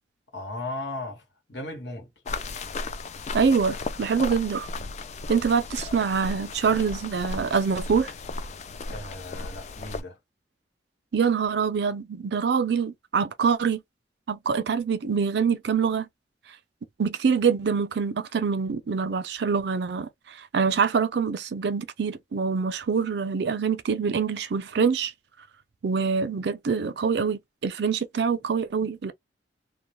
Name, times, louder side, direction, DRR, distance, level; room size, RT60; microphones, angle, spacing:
voice 1, 0.3-1.2 1.5-2.1 8.9-10.2, left 2 dB, 70° left, 1.2 m, -36 dB
sound 1, 2.3-10.0, left 3 dB, 40° left, 0.3 m, -35 dB
voice 2, 3.3-4.7 5.3-8.1 11.1-13.8 14.3-16.1 17.0-20.1 20.5-25.1 25.8-29.1, right 6 dB, 65° right, 0.4 m, -25 dB
2.2 x 2.1 x 2.9 m
head